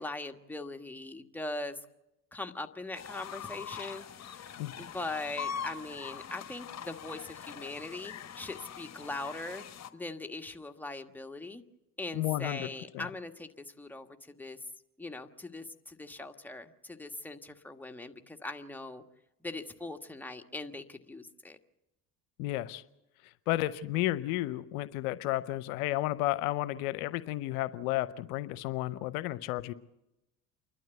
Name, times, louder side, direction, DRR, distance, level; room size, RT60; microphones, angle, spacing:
voice 1, 0.0-1.8 2.3-9.6 9.9-11.6 12.0-13.5 13.8-14.6 15.0-19.0 19.4-21.6, left 2 dB, 5° left, 5 dB, 1.5 m, -41 dB
sound 1, 2.9-9.9, left 7 dB, 35° left, 1.4 m, -43 dB
voice 2, 12.1-12.7 12.9-13.1 22.4-22.8 23.5-29.7, left 16 dB, 70° left, 16 dB, 0.8 m, -32 dB
28.5 x 12.0 x 8.0 m, 0.92 s
hypercardioid pair, 65°, 45 cm